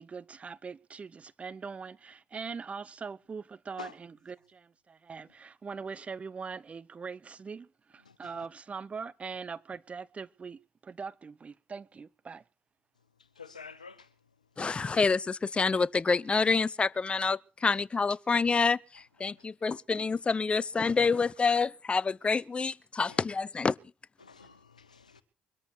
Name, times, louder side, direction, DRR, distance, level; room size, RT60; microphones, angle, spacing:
voice 1, 0.0-12.4, right 5 dB, 35° right, 0.9 m, -42 dB
voice 2, 8.0-8.5 13.2-14.1 17.7-17.8 19.2-19.3 21.4-21.5 23.1-23.2 24.2-25.2, left 5 dB, 90° left, 1.0 m, -49 dB
voice 3, 14.6-23.7, left 4 dB, 30° left, 0.8 m, -27 dB
23.0 x 13.5 x 4.6 m
figure-of-eight pair, 45°, 4 cm